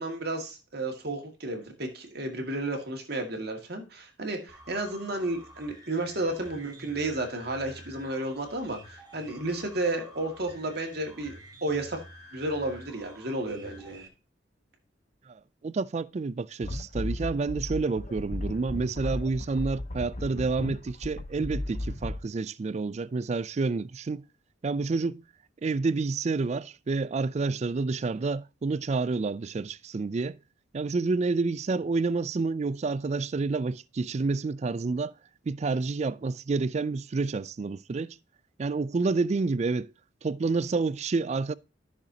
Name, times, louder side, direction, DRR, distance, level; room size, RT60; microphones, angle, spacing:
voice 1, 0.0-12.0 12.3-14.1, right 2 dB, 55° right, 2.1 m, -32 dB
sound 1, 4.5-14.1, right 1 dB, 20° right, 2.2 m, -50 dB
voice 2, 15.3-24.2 24.6-25.2 25.6-30.4 30.7-35.1 35.5-38.2 38.6-39.9 40.2-41.5, right 3 dB, 35° right, 0.3 m, -29 dB
sound 2, 16.6-22.2, left 1 dB, 40° left, 0.9 m, -35 dB
13.5 x 6.5 x 2.8 m
head